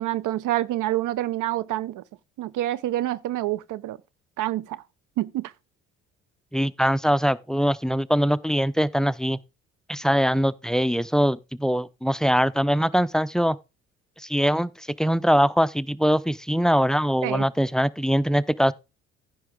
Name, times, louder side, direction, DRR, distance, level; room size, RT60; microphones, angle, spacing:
voice 1, 0.0-2.0 2.4-4.0 4.4-4.8 5.2-5.5 17.2-17.5, right 14 dB, 55° right, 0.7 m, -27 dB
voice 2, 6.5-9.4 9.9-13.6 14.2-18.7, equal, ahead, 0.5 m, -22 dB
15.0 x 5.9 x 3.7 m
hypercardioid pair, 55°, 38 cm